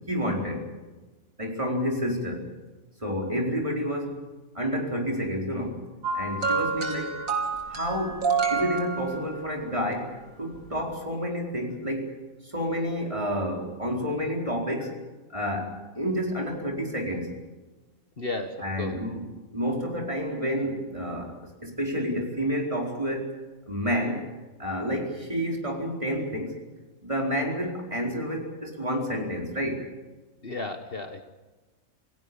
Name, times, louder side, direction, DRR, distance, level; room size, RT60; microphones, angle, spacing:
voice 1, 0.1-0.6 1.4-2.4 3.0-4.2 4.5-5.8 6.1-7.2 7.7-12.1 12.4-15.0 15.3-17.3 18.6-19.3 19.5-23.3 23.7-24.3 24.6-26.6 27.0-29.8, equal, 20° right, 0 dB, 4.8 m, -29 dB
sound 1, 6.0-9.6 10.6-10.8, right 5 dB, 75° right, 3.6 m, -28 dB
voice 2, 18.2-19.0 30.4-31.2, left 2 dB, 45° left, 5 dB, 1.6 m, -34 dB
28.0 x 18.0 x 7.2 m, 1.2 s
omnidirectional pair, 1.4 m